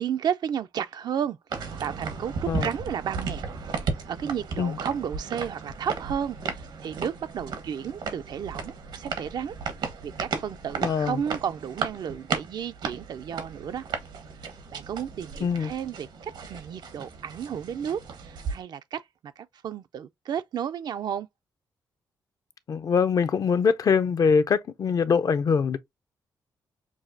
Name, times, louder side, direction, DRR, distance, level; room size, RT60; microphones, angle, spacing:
voice 1, 0.0-9.6 10.0-13.8 14.7-21.3, right 8 dB, 65° right, 0.4 m, -33 dB
sound 1, 1.5-18.6, right 5 dB, 80° right, 1.2 m, -35 dB
voice 2, 10.8-11.2 15.4-15.7 22.7-25.8, left 6 dB, 55° left, 0.5 m, -23 dB
6.1 x 2.4 x 2.6 m
cardioid pair, 80°, 8 cm